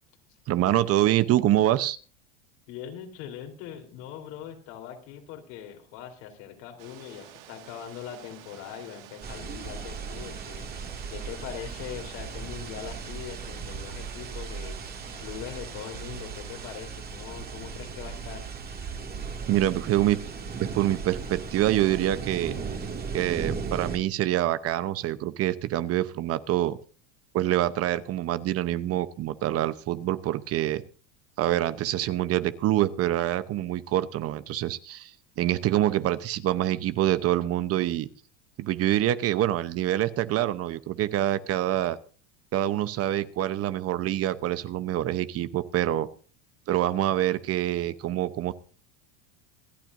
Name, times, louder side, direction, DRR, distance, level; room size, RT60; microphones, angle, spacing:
voice 1, 0.5-2.0 19.5-20.2 20.6-22.5 23.1-26.8 27.3-30.8 31.4-38.1 38.6-42.0 42.5-46.1 46.7-48.5, right 13 dB, 40° right, 14 dB, 0.9 m, -26 dB
voice 2, 2.7-18.5, left 9 dB, 70° left, 4 dB, 3.9 m, -41 dB
sound 1, 6.8-16.8, right 12 dB, 60° right, 2.0 m, -50 dB
sound 2, 9.2-24.0, right 5 dB, 25° right, 2.3 m, -37 dB
26.5 x 9.1 x 2.7 m, 0.37 s
supercardioid pair, 120°, 36 cm